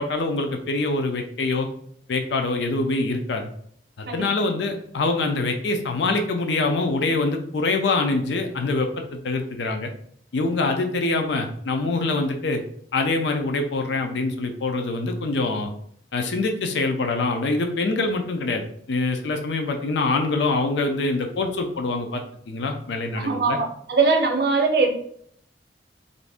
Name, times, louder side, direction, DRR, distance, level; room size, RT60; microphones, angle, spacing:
voice 1, 0.0-1.7 2.1-3.5 4.0-9.9 10.3-12.6 12.9-15.7 16.1-23.6, left 3 dB, 80° left, 5 dB, 0.4 m, -25 dB
voice 2, 23.1-24.9, right 4 dB, 60° right, 3 dB, 0.6 m, -21 dB
2.6 x 2.4 x 3.4 m, 0.64 s
head